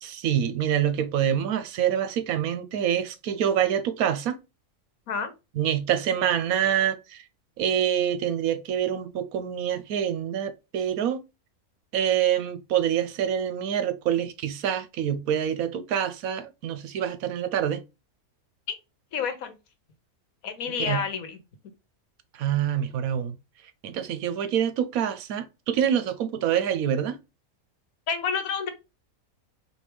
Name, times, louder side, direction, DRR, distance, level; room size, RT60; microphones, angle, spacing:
voice 1, 0.0-4.4 5.6-7.2 7.6-11.2 11.9-17.8 20.8-21.0 22.4-23.3 23.8-27.2, right 9 dB, 75° right, 1.1 m, -26 dB
voice 2, 19.1-19.5 20.4-21.4 28.1-28.7, left 6 dB, 75° left, 1.3 m, -29 dB
4.5 x 2.8 x 3.3 m
omnidirectional pair, 1.5 m